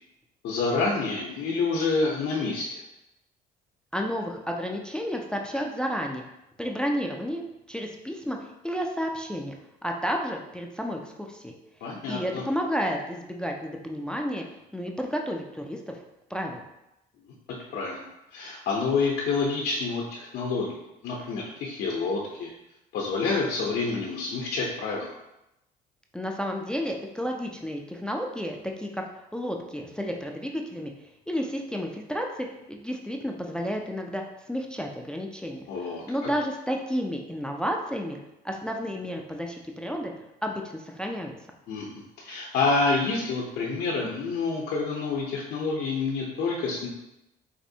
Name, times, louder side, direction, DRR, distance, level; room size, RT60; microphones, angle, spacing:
voice 1, 0.4-2.8 11.8-12.4 17.7-20.7 21.0-22.5 22.9-25.1 35.7-36.0 41.7-46.9, left 4 dB, 70° left, -3 dB, 0.6 m, -28 dB
voice 2, 3.9-6.2 6.6-7.4 7.7-9.6 9.8-11.5 12.1-14.4 14.7-16.0 16.3-16.6 26.1-29.0 29.3-30.9 31.3-34.2 34.5-35.6 36.1-38.2 38.4-40.1 40.4-41.3, equal, 5° left, 1 dB, 0.3 m, -31 dB
4.2 x 2.6 x 2.6 m, 0.89 s
cardioid pair, 110°, 17 cm